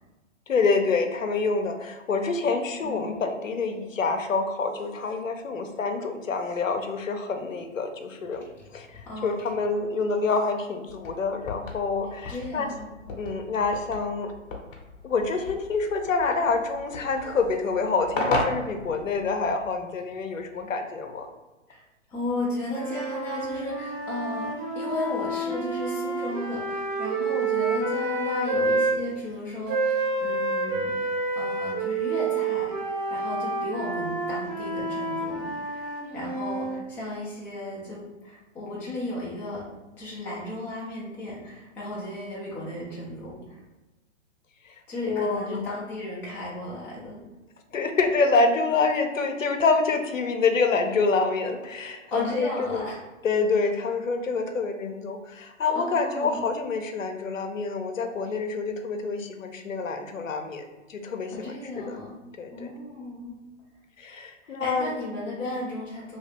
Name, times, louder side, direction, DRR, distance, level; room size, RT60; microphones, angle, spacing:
voice 1, 0.5-12.7 13.2-14.3 15.0-21.3 44.7-44.8 45.0-45.6 47.7-52.9 53.2-62.0 62.4-62.7 64.0-64.9, left 4 dB, 90° left, 6 dB, 0.6 m, -27 dB
voice 2, 2.8-3.1 9.0-9.4 12.3-13.3 21.7-21.8 22.1-35.9 36.1-39.7 39.9-43.6 44.9-47.2 52.1-53.0 55.7-56.4 61.3-62.2 62.5-63.4 64.4-66.2, left 1 dB, 5° left, -7 dB, 0.4 m, -35 dB
sound 1, 10.9-19.6, left 2 dB, 45° left, 0.8 m, -35 dB
sound 2, 22.7-29.0 29.7-36.8, right 3 dB, 40° right, 0.8 m, -28 dB
2.8 x 2.7 x 3.4 m, 1.1 s
figure-of-eight pair, 120°, 38 cm